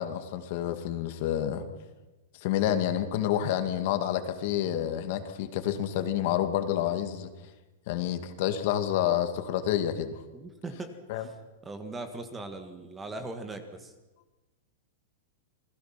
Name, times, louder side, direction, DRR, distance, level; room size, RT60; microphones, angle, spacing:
voice 1, 0.0-1.6 2.4-7.3 7.9-10.2 11.1-11.3, left 11 dB, 45° left, 8 dB, 2.2 m, -29 dB
voice 2, 10.3-11.3 11.6-13.9, right 2 dB, 10° right, 7 dB, 1.7 m, -40 dB
28.5 x 20.5 x 5.9 m, 1.1 s
supercardioid pair, 165°, 0 cm